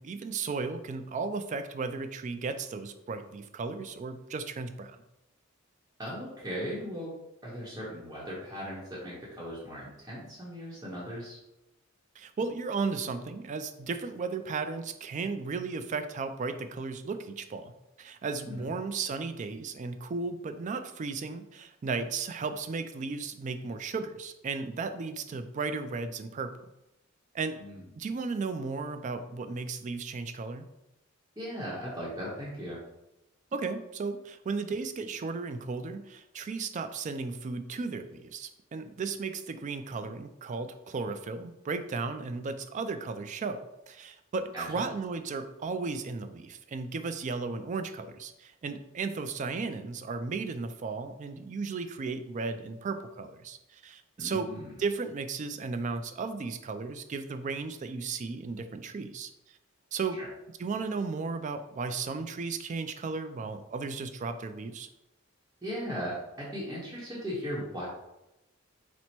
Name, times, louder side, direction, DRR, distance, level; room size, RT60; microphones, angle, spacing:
voice 1, 0.0-5.0 12.2-26.7 27.3-27.6 28.0-30.7 33.5-43.6 43.9-59.3 59.9-60.2 60.6-64.9, right 4 dB, 35° right, 9 dB, 0.3 m, -35 dB
voice 2, 6.0-7.1 7.4-11.4 18.5-18.7 27.6-27.8 31.4-32.8 44.5-44.8 54.2-54.8 60.2-60.3 65.6-67.9, equal, 15° right, -7 dB, 0.9 m, -38 dB
4.4 x 2.1 x 4.2 m, 0.91 s
head